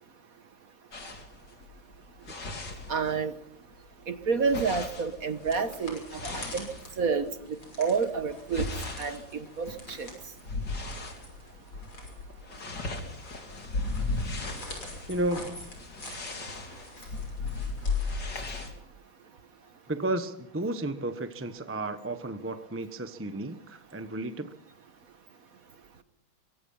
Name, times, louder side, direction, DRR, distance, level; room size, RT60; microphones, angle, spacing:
sound 1, 0.9-3.4 3.7-7.4 7.9-11.2 11.7-11.9 12.2-18.7, left 3 dB, 55° left, 3.6 m, -36 dB
voice 1, 2.9-3.3 4.1-6.7 7.0-8.7 9.0-10.1, right 5 dB, 45° right, 10 dB, 1.6 m, -29 dB
sound 2, 5.1-18.8, left 2 dB, 90° left, 6.9 m, -46 dB
voice 2, 15.1-15.7 19.9-24.5, right 1 dB, 10° right, 9 dB, 0.7 m, -33 dB
24.0 x 24.0 x 5.7 m, 0.72 s
omnidirectional pair, 2.2 m